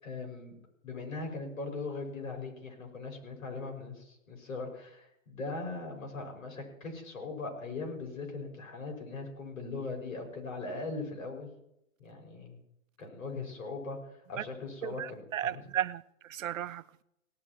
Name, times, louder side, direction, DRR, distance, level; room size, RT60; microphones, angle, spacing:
voice 1, 0.0-0.5 0.8-11.5 12.0-12.6 13.0-15.6, left 3 dB, 80° left, 6.0 m, -40 dB
voice 2, 14.8-17.0, right 11 dB, 70° right, 0.7 m, -35 dB
18.0 x 9.8 x 4.6 m
hypercardioid pair, 170°, 40 cm